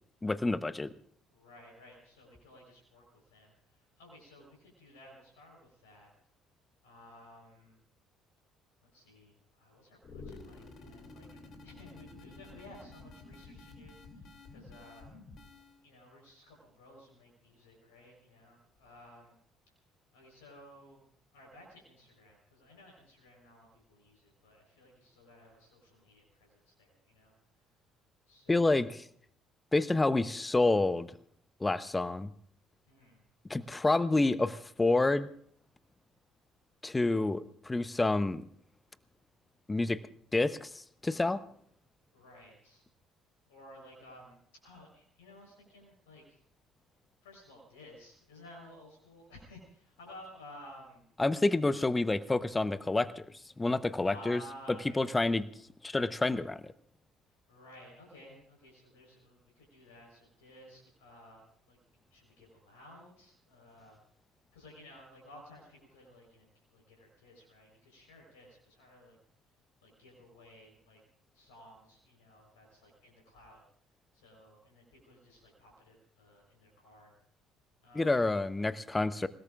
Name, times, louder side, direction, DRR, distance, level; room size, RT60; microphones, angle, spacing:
voice 1, 0.2-0.9 28.5-29.0 29.7-31.1 31.6-32.3 33.5-35.3 36.8-38.4 39.7-40.0 40.3-41.4 51.2-53.2 53.6-54.4 55.0-55.4 55.8-56.7 77.9-79.3, left 2 dB, 20° left, 15 dB, 0.9 m, -28 dB
voice 2, 1.3-6.1 6.8-7.8 8.9-15.2 15.8-19.4 20.1-21.0 21.3-27.3 28.3-28.9 32.8-33.2 42.1-42.8 43.5-46.4 47.2-51.0 54.0-55.1 57.5-61.8 62.1-64.0 64.5-69.2 69.8-71.0 71.3-73.6 74.1-77.1 77.8-78.5, left 1 dB, 75° left, 0 dB, 4.2 m, -55 dB
sound 1, 10.0-15.8, left 3 dB, 50° left, 2.8 m, -51 dB
27.5 x 18.0 x 2.5 m, 0.62 s
figure-of-eight pair, 50°, 0 cm